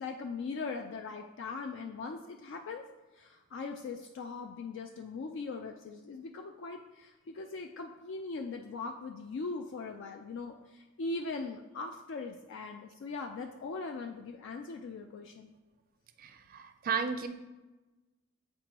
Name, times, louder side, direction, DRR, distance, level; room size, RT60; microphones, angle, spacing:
voice 1, 0.0-2.9 3.1-15.5, left 4 dB, 60° left, 4 dB, 0.3 m, -40 dB
voice 2, 16.2-17.3, right 6 dB, 40° right, 8 dB, 0.4 m, -34 dB
7.5 x 4.3 x 2.9 m, 1.1 s
head